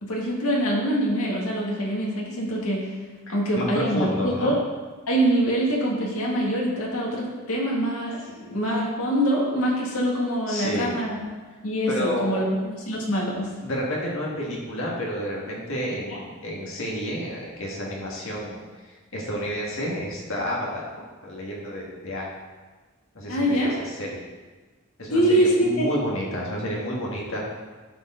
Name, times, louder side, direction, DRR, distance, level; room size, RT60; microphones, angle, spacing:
voice 1, 0.0-2.9 3.3-4.6 5.1-11.2 11.6-13.5 16.1-16.2 23.3-23.8 25.1-25.9, right 1 dB, 75° left, -3 dB, 2.0 m, -24 dB
voice 2, 3.3-4.6 10.5-11.0 11.9-12.4 13.6-22.3 23.1-24.2 25.0-27.4, equal, 60° left, -4 dB, 1.8 m, -30 dB
12.0 x 4.7 x 3.8 m, 1.3 s
head